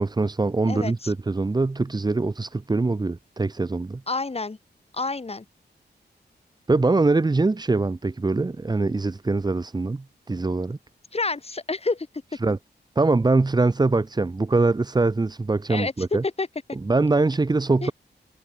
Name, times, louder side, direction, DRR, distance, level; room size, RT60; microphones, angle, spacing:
voice 1, 0.0-4.0 6.7-10.8 12.4-12.6 13.0-16.2 16.8-17.9, right 3 dB, 25° right, 0.8 m, -23 dB
voice 2, 0.7-1.1 4.1-4.6 4.9-5.5 11.1-12.1 15.7-15.9 16.4-16.5 17.8-17.9, left 3 dB, 35° left, 3.4 m, -28 dB
wide cardioid pair, 85°, 18 cm